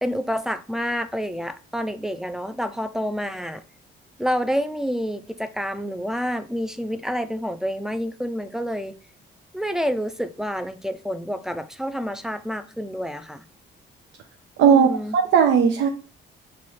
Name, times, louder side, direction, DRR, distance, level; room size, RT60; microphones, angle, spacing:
voice 1, 0.0-3.6 4.2-8.9 9.5-13.4 14.6-15.2, equal, ahead, 0.3 m, -28 dB
voice 2, 14.6-15.9, right 7 dB, 80° right, 0.5 m, -17 dB
3.1 x 2.3 x 4.1 m
cardioid pair, 90°, 20 cm